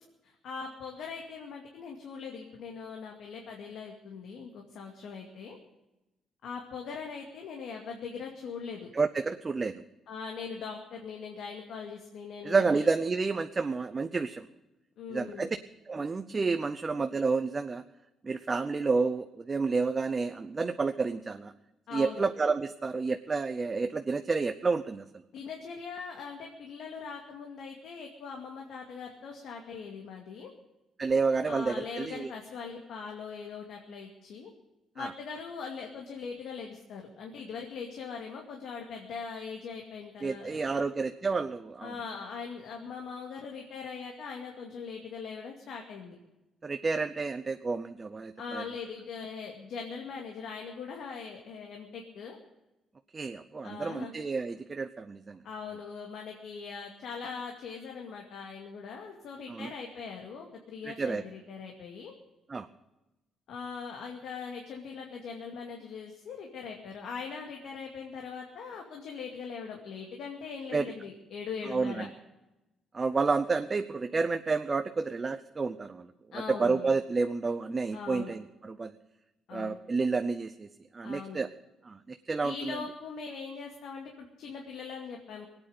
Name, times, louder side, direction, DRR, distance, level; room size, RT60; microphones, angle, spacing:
voice 1, 0.2-5.6 6.4-8.9 10.1-12.8 15.0-15.5 21.9-22.2 25.3-30.5 31.4-34.5 34.9-40.9 41.8-46.2 48.4-52.4 53.6-54.1 55.4-62.1 63.5-72.1 76.3-76.9 77.9-78.3 79.5-79.8 81.0-81.4 82.4-85.5, left 5 dB, 75° left, 1 dB, 2.3 m, -41 dB
voice 2, 8.9-9.7 12.4-14.5 15.1-15.6 15.9-17.8 18.2-21.5 21.9-25.0 31.0-32.3 35.0-35.1 40.2-41.9 46.6-48.6 53.1-55.4 59.5-59.7 60.8-61.2 62.5-62.7 70.7-70.9 71.7-72.1 72.9-76.1 76.3-78.9 79.5-80.7 80.9-81.5 81.8-82.8, right 4 dB, 30° right, 8 dB, 0.8 m, -30 dB
19.5 x 9.1 x 8.0 m, 1.0 s
cardioid pair, 90°, 0 cm